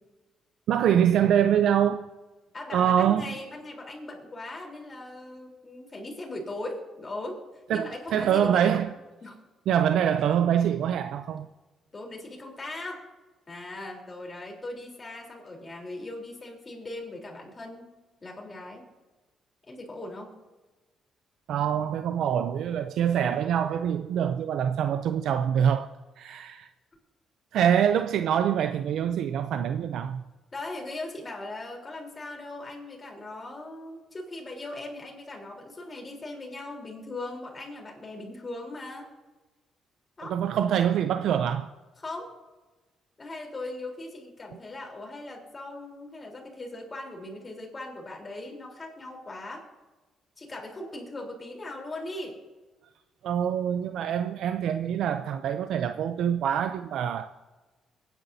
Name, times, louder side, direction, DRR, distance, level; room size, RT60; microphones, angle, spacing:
voice 1, 0.7-2.1 2.7-3.4 7.7-8.9 9.7-11.5 21.5-26.7 27.5-30.2 40.3-41.7 53.2-57.3, right 9 dB, 75° right, 0.5 m, -25 dB
voice 2, 2.5-7.4 7.7-8.8 9.2-9.4 11.9-13.0 13.5-17.9 18.2-18.8 19.7-20.3 30.5-39.1 40.2-40.4 42.0-42.4 43.2-49.6 50.4-52.4, left 2 dB, 30° left, 3.7 m, -39 dB
22.5 x 10.0 x 2.8 m
cardioid pair, 90°, 0 cm